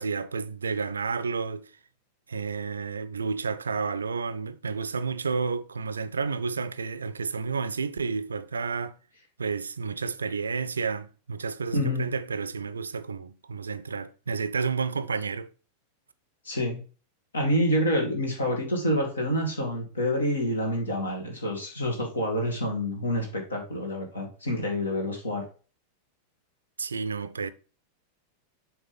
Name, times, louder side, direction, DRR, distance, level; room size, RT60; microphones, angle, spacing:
voice 1, 0.0-1.7 2.3-9.0 9.4-15.5 26.8-27.5, right 5 dB, 75° right, 0.4 m, -31 dB
voice 2, 11.7-12.1 16.4-16.8 17.3-25.5, equal, 70° left, 2.2 m, -27 dB
7.1 x 3.5 x 5.3 m
figure-of-eight pair, 90°, 0 cm